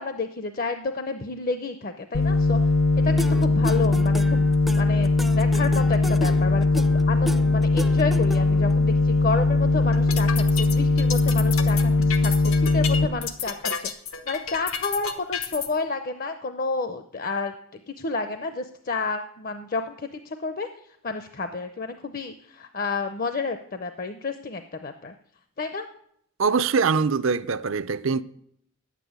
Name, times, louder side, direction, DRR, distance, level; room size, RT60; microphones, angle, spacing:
voice 1, 0.0-2.6 3.0-4.4 4.8-13.9 14.3-20.7 21.0-25.1 25.6-25.9, left 3 dB, 45° left, 0.6 m, -30 dB
sound 1, 2.1-13.1, left 3 dB, 65° left, 1.0 m, -20 dB
sound 2, 3.2-8.7, equal, ahead, 0.4 m, -34 dB
sound 3, 9.9-15.7, left 7 dB, 90° left, 1.3 m, -31 dB
voice 2, 26.4-28.2, right 5 dB, 70° right, 0.5 m, -23 dB
10.0 x 8.4 x 9.3 m
head